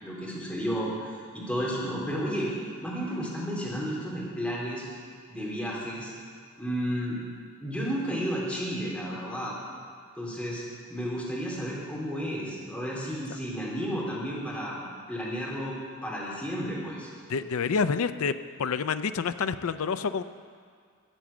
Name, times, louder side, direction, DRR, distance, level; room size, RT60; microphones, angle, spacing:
voice 1, 0.0-1.1 1.3-2.5 2.8-4.9 5.3-6.1 6.6-7.2 7.6-9.5 10.2-10.6 10.9-14.8 15.1-17.1, equal, 5° left, -6 dB, 3.3 m, -32 dB
voice 2, 17.3-20.2, left 5 dB, 65° left, 11 dB, 0.5 m, -28 dB
14.0 x 7.5 x 7.1 m, 2.1 s
head